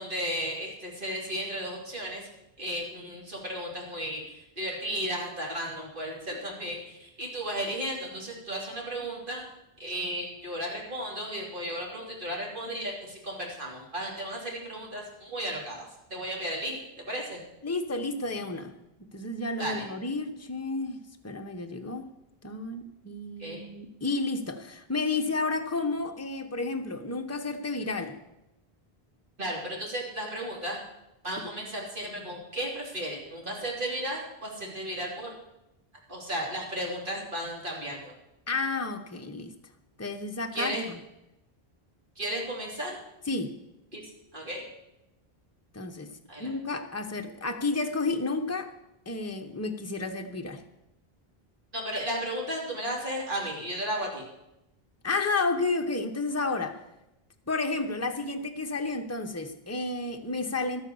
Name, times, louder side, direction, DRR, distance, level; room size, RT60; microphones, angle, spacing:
voice 1, 0.0-2.2 2.6-9.4 9.8-15.8 16.1-16.8 17.1-17.4 19.6-19.9 23.4-23.6 29.4-30.8 31.2-35.3 36.1-38.1 40.5-40.8 42.2-43.0 43.9-44.0 44.3-44.6 46.3-46.5 51.7-54.2, right 1 dB, 55° right, -3 dB, 3.3 m, -34 dB
voice 2, 17.6-18.7 19.1-22.1 22.4-28.2 31.4-31.5 38.5-39.5 40.0-41.0 43.3-43.5 45.7-46.1 46.4-48.7 49.1-50.6 55.0-56.8 57.5-60.8, left 3 dB, 15° left, 5 dB, 0.9 m, -31 dB
12.5 x 9.0 x 7.0 m, 0.90 s
omnidirectional pair, 1.0 m